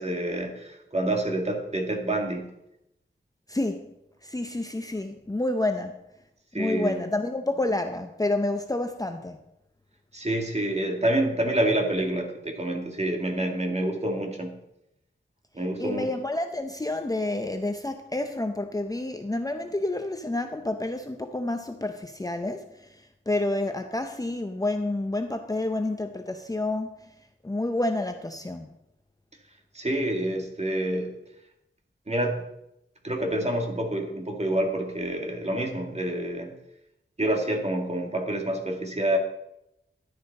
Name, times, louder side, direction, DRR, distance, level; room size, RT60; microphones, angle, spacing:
voice 1, 0.0-2.5 6.5-7.0 10.1-14.6 15.5-16.1 29.7-31.2 32.1-32.5 33.0-36.5 37.2-39.2, right 1 dB, 30° right, 2.2 m, -27 dB
voice 2, 3.5-3.9 4.2-6.0 6.5-9.4 15.8-27.1 27.4-28.7, left 2 dB, 15° left, 0.7 m, -29 dB
11.5 x 10.5 x 4.2 m
wide cardioid pair, 80°, 21 cm